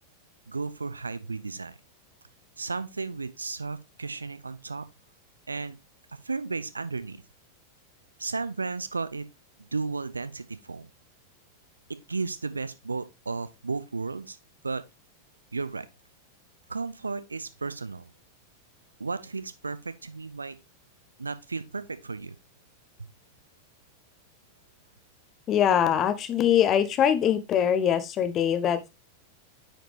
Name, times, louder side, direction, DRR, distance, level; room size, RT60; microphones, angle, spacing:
voice 1, 0.5-1.7 2.6-4.8 5.5-5.8 6.2-7.2 8.2-9.3 9.7-10.9 12.1-14.4 14.6-14.8 15.5-15.9 16.7-18.1 19.0-20.6 21.2-22.4 23.0-23.1, right 4 dB, 80° right, 0.6 m, -34 dB
voice 2, 25.5-28.9, left 9 dB, 30° left, 0.9 m, -23 dB
8.9 x 4.9 x 3.3 m
figure-of-eight pair, 90°, 0 cm